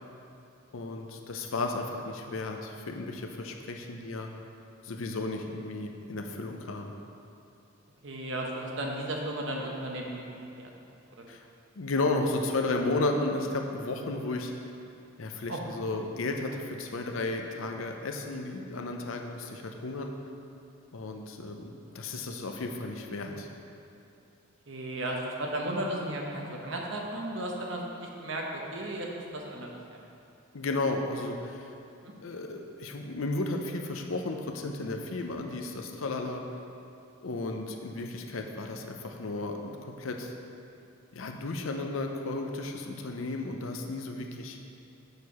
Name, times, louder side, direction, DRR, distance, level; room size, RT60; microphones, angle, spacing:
voice 1, 0.7-4.3 4.8-6.9 11.3-11.4 11.8-14.5 15.2-20.1 20.9-23.5 30.5-31.7 32.2-36.4 37.2-40.3 41.1-44.6, left 2 dB, 80° left, 3 dB, 0.6 m, -33 dB
voice 2, 8.0-10.7 11.1-11.4 15.5-15.6 24.7-30.0 32.0-32.1 44.2-44.5, right 1 dB, 65° right, -1 dB, 0.9 m, -35 dB
6.6 x 4.7 x 5.4 m, 2.7 s
head